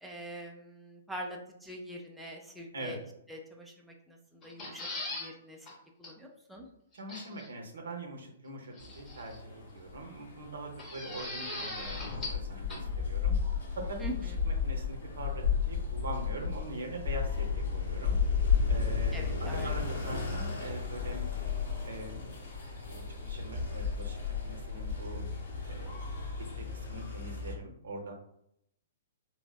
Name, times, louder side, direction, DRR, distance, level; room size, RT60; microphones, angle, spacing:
voice 1, 0.0-3.0 3.3-5.7 6.0-6.7 14.0-14.4 19.1-19.7, right 1 dB, ahead, -2 dB, 0.3 m, -44 dB
sound 1, 4.4-5.3 5.7-5.8 6.0-6.1 7.1-7.5 8.8-9.4 10.8-12.4 12.7-12.8, left 2 dB, 20° left, 0.7 m, -39 dB
voice 2, 6.9-13.4 13.8-14.0 14.4-18.2 18.7-21.2 21.8-22.4 22.9-24.2 24.4-25.3 25.7-25.9 26.4-28.1, right 2 dB, 65° right, 2 dB, 0.6 m, -42 dB
sound 2, 8.8-27.5, left 6 dB, 60° left, 0.7 m, -33 dB
3.2 x 2.1 x 2.2 m, 0.75 s
figure-of-eight pair, 115°, 0 cm